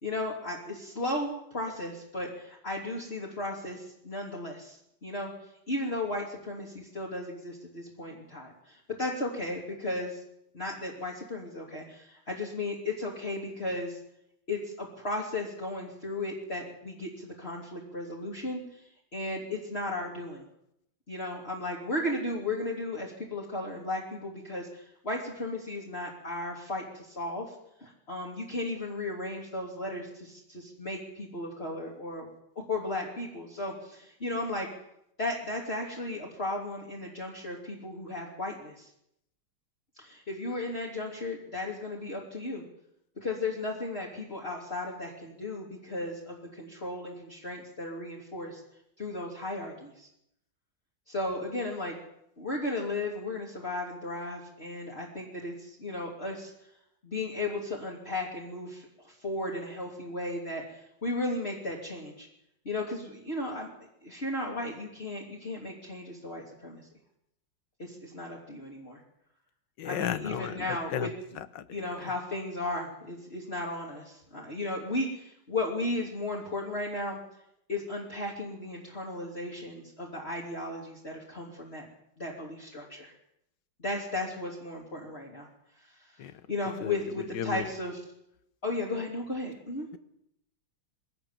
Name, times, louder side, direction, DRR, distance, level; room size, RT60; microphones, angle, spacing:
voice 1, 0.0-5.3 5.7-10.2 10.5-14.0 14.5-18.8 19.1-20.4 21.1-27.5 27.8-32.3 32.7-34.7 35.2-38.9 40.0-42.6 43.2-48.6 49.0-50.1 51.1-51.9 52.4-56.5 57.0-62.3 62.6-63.7 64.0-66.8 67.8-69.0 69.8-71.1 71.7-77.2 77.7-81.9 82.2-83.1 83.8-85.5 85.8-86.2 86.5-88.0 88.6-89.9, left 2 dB, 30° left, -2 dB, 3.1 m, -35 dB
voice 2, 69.8-70.6 70.9-71.1 71.6-71.7 86.2-86.3 86.8-86.9 87.3-87.6, left 10 dB, 65° left, 14 dB, 1.7 m, -33 dB
22.5 x 17.5 x 7.4 m, 0.78 s
omnidirectional pair, 2.2 m